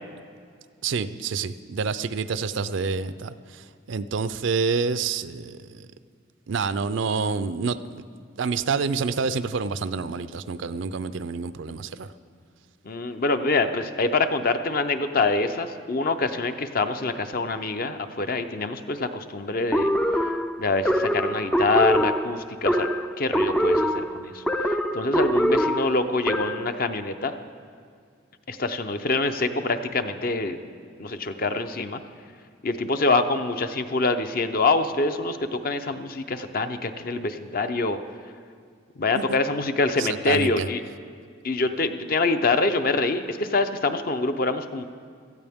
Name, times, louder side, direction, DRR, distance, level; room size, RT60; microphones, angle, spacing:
voice 1, 0.8-5.9 6.5-8.0 8.4-12.1 39.2-39.4 40.0-40.7, right 5 dB, 65° right, 14 dB, 0.4 m, -28 dB
voice 2, 12.9-19.9 20.6-22.9 23.2-24.4 24.9-27.3 28.5-30.6 31.0-32.0 32.6-38.0 39.0-40.8 41.4-44.8, left 3 dB, 45° left, 9 dB, 0.6 m, -25 dB
sound 1, 19.7-26.8, equal, 5° left, 0.3 m, -24 dB
17.5 x 13.5 x 3.6 m, 2.2 s
head